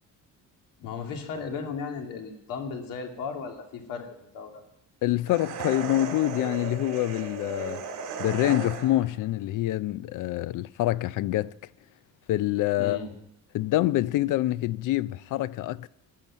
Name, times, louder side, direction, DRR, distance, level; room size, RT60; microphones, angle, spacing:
voice 1, 0.8-4.6 12.8-13.1, left 5 dB, 90° left, 2.5 m, -36 dB
voice 2, 5.0-7.8 8.2-11.5 12.3-13.0 13.5-15.9, left 15 dB, 70° left, 0.5 m, -26 dB
sound 1, 5.3-9.1, right 6 dB, 55° right, 3.4 m, -36 dB
15.0 x 11.0 x 7.3 m
cardioid pair, 155°, 33 cm